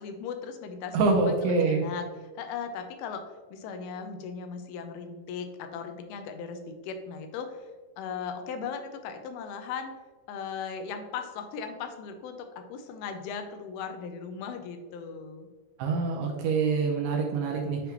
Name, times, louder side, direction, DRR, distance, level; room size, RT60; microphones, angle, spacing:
voice 1, 0.0-2.1 2.4-7.7 8.0-9.9 10.3-15.5, left 6 dB, 85° left, 7 dB, 2.5 m, -38 dB
voice 2, 0.9-1.8 15.8-17.8, right 4 dB, 75° right, 1 dB, 2.2 m, -25 dB
9.3 x 3.6 x 2.9 m, 1.3 s
omnidirectional pair, 4.4 m